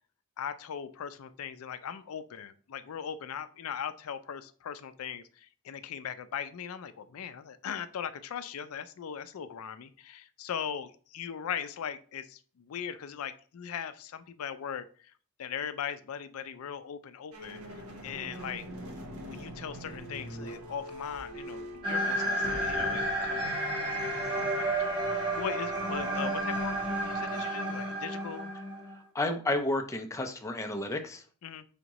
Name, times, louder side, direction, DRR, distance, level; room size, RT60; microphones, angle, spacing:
voice 1, 0.4-15.1 15.4-18.7 19.3-28.5 31.4-31.7, left 8 dB, 75° left, 11 dB, 0.4 m, -39 dB
sound 1, 17.3-27.4, equal, 75° right, 1.0 m, -45 dB
sound 2, 21.8-28.9, right 1 dB, 20° right, 1.3 m, -31 dB
voice 2, 29.1-31.2, left 2 dB, 15° left, 5 dB, 0.4 m, -31 dB
5.0 x 3.5 x 2.9 m, 0.42 s
head